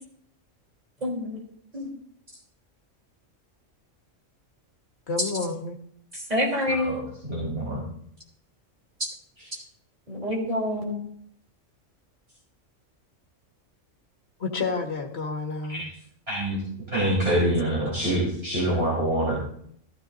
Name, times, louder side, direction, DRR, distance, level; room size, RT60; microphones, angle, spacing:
voice 1, 1.0-1.4 1.7-1.9 6.1-6.9 9.0-9.1 10.1-11.0, left 1 dB, 30° right, -3 dB, 3.6 m, -27 dB
voice 2, 5.1-5.8 14.4-15.9, left 4 dB, 55° left, 2 dB, 1.9 m, -30 dB
voice 3, 7.3-7.8 15.7-15.8 16.3-16.6 16.9-19.4, right 1 dB, 50° right, -6 dB, 4.2 m, -25 dB
14.5 x 13.5 x 2.7 m, 0.64 s
omnidirectional pair, 1.4 m